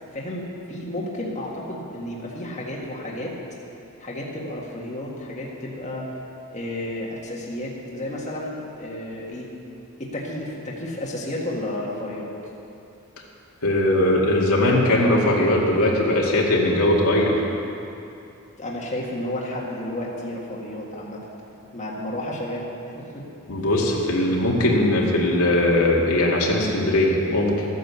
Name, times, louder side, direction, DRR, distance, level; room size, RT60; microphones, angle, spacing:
voice 1, 0.1-3.3 4.0-6.2 6.5-9.5 10.0-12.3 18.6-21.2 21.7-22.7 22.9-23.3, left 1 dB, 30° left, -4 dB, 1.7 m, -32 dB
voice 2, 13.6-17.5 23.5-27.7, left 1 dB, 85° left, -3 dB, 2.3 m, -20 dB
14.0 x 9.4 x 7.0 m, 2.7 s
head